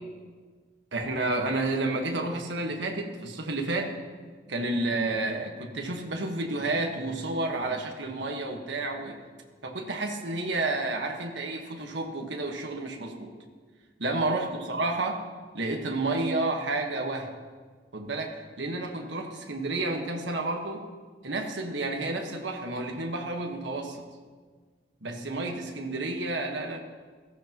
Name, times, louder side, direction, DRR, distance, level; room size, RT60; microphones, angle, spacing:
voice 1, 0.9-3.9 4.5-9.2 9.6-13.4 14.0-15.2 15.5-17.3 17.9-20.9 21.2-24.0 25.0-26.8, right 2 dB, 80° right, 2 dB, 1.4 m, -30 dB
16.5 x 15.0 x 3.0 m, 1.5 s
head